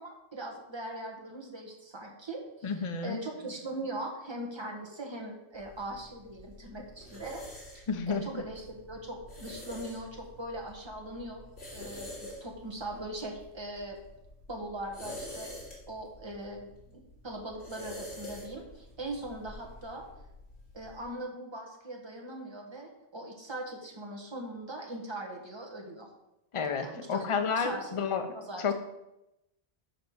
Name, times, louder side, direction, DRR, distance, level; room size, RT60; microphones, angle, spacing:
voice 1, 0.0-2.7 3.0-7.4 7.7-11.4 11.7-14.0 14.5-15.5 15.9-20.1 20.7-26.1 26.8-27.3 27.5-28.0 28.3-28.7, right 1 dB, 25° right, 1 dB, 1.3 m, -40 dB
voice 2, 2.6-3.2 7.9-8.4 26.5-28.2 28.6-28.7, left 5 dB, 35° left, 7 dB, 0.6 m, -31 dB
sound 1, 5.5-21.0, left 1 dB, 70° left, 2.7 m, -47 dB
5.3 x 5.1 x 6.2 m, 0.89 s
omnidirectional pair, 1.1 m